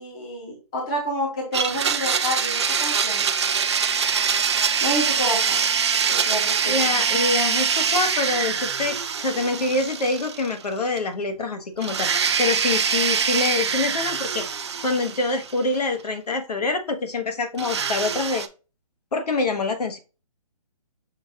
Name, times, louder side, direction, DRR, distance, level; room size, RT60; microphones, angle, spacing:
voice 1, 0.0-3.3 4.8-5.7 6.1-6.9, equal, 10° left, 0 dB, 0.6 m, -29 dB
Domestic sounds home sounds, 1.5-10.7 11.0-11.1 11.8-15.8 17.6-18.5, right 6 dB, 45° right, 0.4 m, -24 dB
voice 2, 6.6-12.1 12.4-14.5 14.8-18.5 19.1-20.0, left 3 dB, 85° left, 7 dB, 1.2 m, -25 dB
6.3 x 2.4 x 3.5 m, 0.32 s
hypercardioid pair, 175°, 19 cm